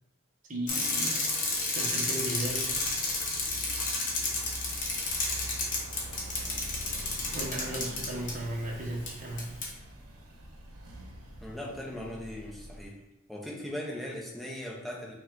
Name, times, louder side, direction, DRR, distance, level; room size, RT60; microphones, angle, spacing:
voice 1, 0.5-1.2 1.7-2.8 7.3-9.6, right 1 dB, 35° right, -3 dB, 0.8 m, -36 dB
Bicycle, 0.7-8.3 9.1-9.2 9.4-9.7, left 3 dB, 35° left, 0.8 m, -31 dB
sound 1, 2.5-12.8, right 1 dB, 85° right, 0.8 m, -45 dB
voice 2, 11.4-13.0 13.3-15.1, left 1 dB, ahead, -3 dB, 0.6 m, -39 dB
5.0 x 2.2 x 3.7 m, 0.98 s
head